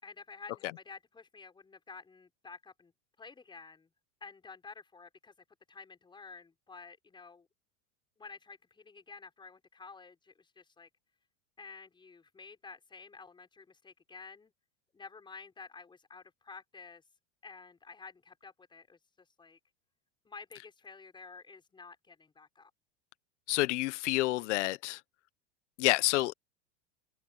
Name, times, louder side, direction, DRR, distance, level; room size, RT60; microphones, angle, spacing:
voice 1, 0.0-2.9 3.2-3.9 4.2-5.3 5.7-7.5 8.2-10.9 11.6-14.5 14.9-17.0 17.4-19.6 20.2-22.7, left 4 dB, 15° left, 5.2 m, -51 dB
voice 2, 23.5-25.0 25.8-26.3, left 19 dB, 75° left, 1.3 m, -28 dB
open air
supercardioid pair, 145°, 36 cm